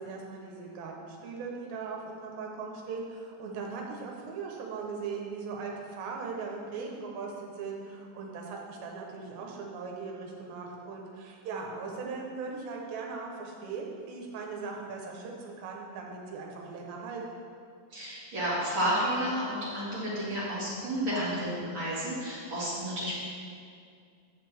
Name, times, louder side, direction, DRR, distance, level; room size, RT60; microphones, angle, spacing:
voice 1, 0.0-17.5, right 4 dB, 80° right, 0 dB, 3.2 m, -39 dB
voice 2, 17.9-23.2, equal, 35° right, -10 dB, 2.1 m, -31 dB
10.5 x 6.6 x 3.5 m, 2.3 s
omnidirectional pair, 5.2 m